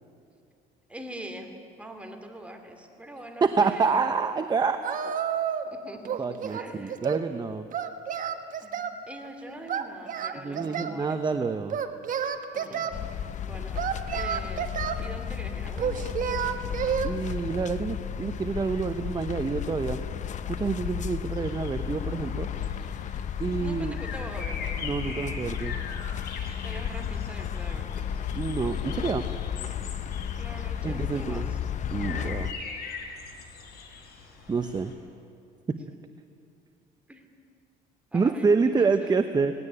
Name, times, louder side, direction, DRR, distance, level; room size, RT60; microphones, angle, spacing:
voice 1, 0.9-4.1 5.6-7.0 8.6-11.3 12.5-13.8 14.1-16.1 23.6-24.9 26.6-28.2 30.4-31.6 37.1-37.3 38.1-39.5, right 1 dB, 5° right, 4 dB, 2.8 m, -43 dB
voice 2, 3.4-5.1 6.2-7.7 10.3-11.8 17.0-20.0 20.5-22.5 23.4-23.9 24.8-25.8 28.3-29.2 30.8-31.5 31.9-32.5 34.5-34.9 35.7-35.8 38.1-39.5, right 4 dB, 25° right, 8 dB, 0.9 m, -27 dB
Singing, 4.8-5.7 6.0-7.3 7.7-9.0 9.7-11.0 11.7-12.9 13.8-15.0 15.8-17.1, right 8 dB, 50° right, 1.3 m, -30 dB
sound 1, 12.9-32.5, left 9 dB, 45° left, 0.8 m, -33 dB
sound 2, 21.4-34.9, left 4 dB, 70° left, 4.4 m, -43 dB
18.5 x 17.0 x 10.0 m, 2.4 s
cardioid pair, 110°, 17 cm